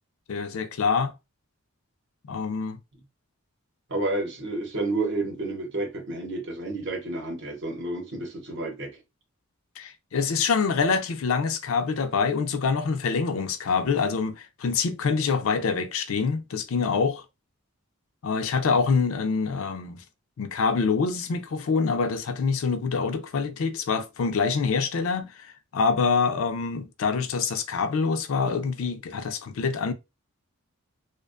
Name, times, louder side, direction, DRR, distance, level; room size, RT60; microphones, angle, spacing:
voice 1, 0.3-1.1 2.3-2.8 9.8-17.2 18.2-20.0 20.4-29.9, left 5 dB, 65° left, 0.4 m, -25 dB
voice 2, 3.9-8.9, right 2 dB, 55° right, 0.8 m, -30 dB
2.5 x 2.2 x 2.4 m
head